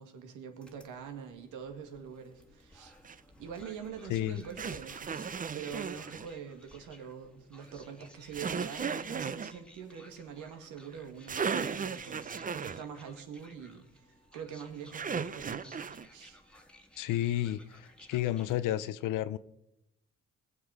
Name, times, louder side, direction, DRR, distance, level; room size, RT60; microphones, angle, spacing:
voice 1, 0.0-2.9 3.4-14.1 14.3-16.4, right 7 dB, 90° right, 2.1 m, -44 dB
sound 1, 0.6-18.6, left 1 dB, 5° left, 1.7 m, -57 dB
sound 2, 3.0-3.2 4.6-6.3 8.3-9.5 11.0-11.1 11.3-12.8 14.9-16.1, right 6 dB, 30° right, 0.6 m, -35 dB
voice 2, 4.1-4.4 17.0-19.4, left 13 dB, 90° left, 0.7 m, -31 dB
21.5 x 7.2 x 4.9 m
cardioid pair, 90°, 30 cm